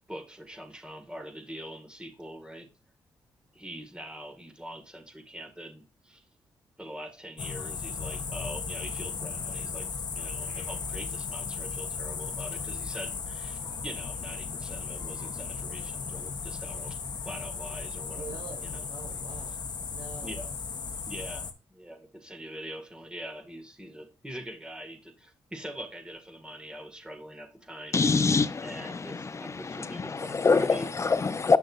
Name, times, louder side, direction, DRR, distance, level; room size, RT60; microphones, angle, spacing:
voice 1, 0.1-2.7 3.5-6.2 6.8-9.9 10.1-17.0 17.3-18.9 20.2-20.5 21.1-21.4 21.7-28.0 28.6-30.9, equal, 10° right, 1.9 m, -43 dB
sound 1, 7.4-21.5, left 5 dB, 55° left, 0.9 m, -36 dB
voice 2, 18.1-19.5 19.9-20.5, right 5 dB, 60° right, 1.4 m, -45 dB
voice 3, 27.9-31.6, left 4 dB, 35° left, 0.6 m, -25 dB
8.1 x 6.3 x 2.5 m
supercardioid pair, 60°, 9 cm